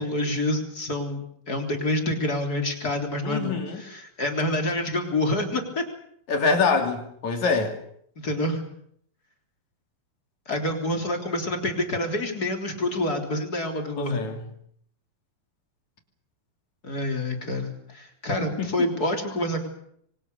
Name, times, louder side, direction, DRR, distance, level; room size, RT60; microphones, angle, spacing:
voice 1, 0.0-5.8 8.2-8.6 10.5-14.2 16.8-19.7, left 1 dB, 25° left, 4 dB, 3.8 m, -27 dB
voice 2, 3.2-3.8 6.3-7.8 14.0-14.4 18.4-18.9, left 4 dB, 55° left, 5 dB, 4.2 m, -25 dB
27.0 x 24.5 x 6.8 m, 0.68 s
omnidirectional pair, 4.0 m